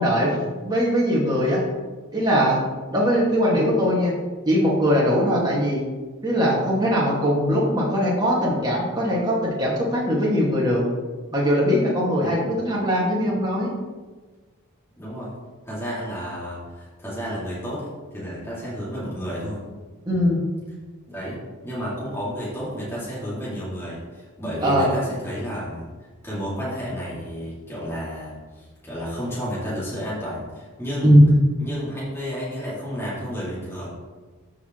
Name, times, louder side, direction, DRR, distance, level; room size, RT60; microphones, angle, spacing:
voice 1, 0.0-1.6 2.1-2.6 2.9-4.1 4.4-5.8 6.2-10.8 11.3-13.7 20.0-20.4 24.6-24.9 31.0-31.2, equal, 20° right, -4 dB, 1.8 m, -21 dB
voice 2, 12.2-12.5 15.0-15.3 15.6-19.6 21.1-21.4 21.6-25.9 26.2-31.1 31.6-33.9, equal, 10° left, -9 dB, 2.2 m, -31 dB
13.5 x 4.9 x 3.0 m, 1.3 s
head